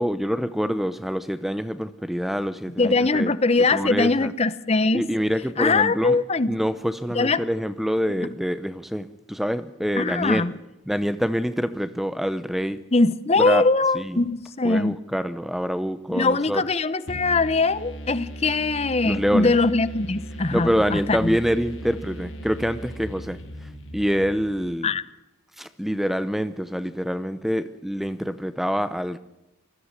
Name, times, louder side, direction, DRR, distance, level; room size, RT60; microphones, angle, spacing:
voice 1, 0.0-3.3 3.7-4.3 4.9-6.2 6.5-10.5 10.9-12.8 13.4-13.6 13.9-14.2 14.6-16.6 19.0-19.5 20.5-24.9 25.6-29.2, equal, ahead, 0.7 m, -26 dB
voice 2, 2.8-5.0 5.6-6.6 7.1-7.4 10.0-10.5 12.9-15.0 16.1-21.4 24.8-25.0, left 3 dB, 30° left, 0.8 m, -22 dB
sound 1, 17.1-24.8, equal, 70° left, 3.1 m, -38 dB
20.0 x 14.5 x 9.8 m
head